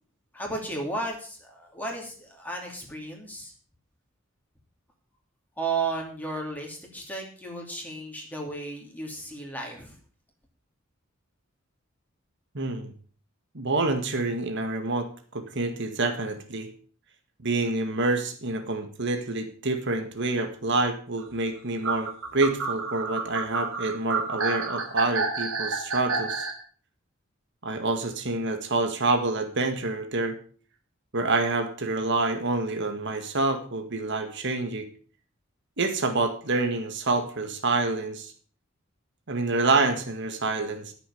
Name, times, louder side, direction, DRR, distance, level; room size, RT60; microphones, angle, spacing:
voice 1, 0.3-3.5 5.6-10.0, right 3 dB, 10° left, 0 dB, 2.7 m, -34 dB
voice 2, 12.5-12.9 13.5-16.7 17.4-26.5 27.6-30.4 31.1-34.9 35.8-38.3 39.3-40.9, right 3 dB, 60° right, 6 dB, 1.8 m, -27 dB
sound 1, 21.8-26.6, right 4 dB, 85° right, 3.0 m, -29 dB
12.5 x 7.1 x 7.0 m, 0.43 s
head